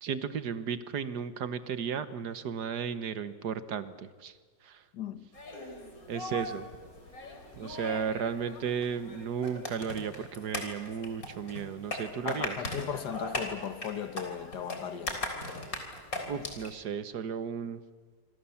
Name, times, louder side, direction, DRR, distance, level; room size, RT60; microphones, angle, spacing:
voice 1, 0.0-4.3 4.6-4.8 6.1-6.7 7.6-12.6 16.3-17.8, right 7 dB, 60° right, 1.6 m, -34 dB
voice 2, 4.9-5.3 12.2-15.2, left 8 dB, 60° left, 1.8 m, -37 dB
sound 1, 5.3-16.8, left 2 dB, 45° left, 4.1 m, -40 dB
26.0 x 26.0 x 7.2 m
omnidirectional pair, 2.1 m